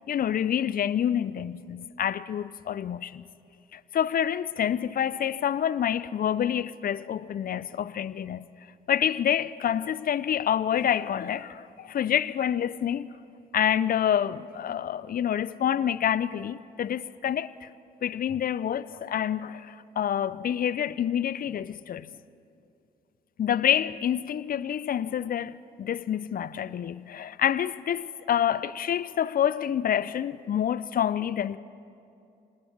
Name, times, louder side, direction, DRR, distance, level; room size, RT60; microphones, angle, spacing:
voice 1, 0.1-3.2 3.7-8.5 8.9-13.1 13.5-17.7 18.0-22.1 23.4-31.6, left 9 dB, 45° left, 0.6 m, -27 dB
26.0 x 18.5 x 6.0 m
hypercardioid pair, 40°, 20 cm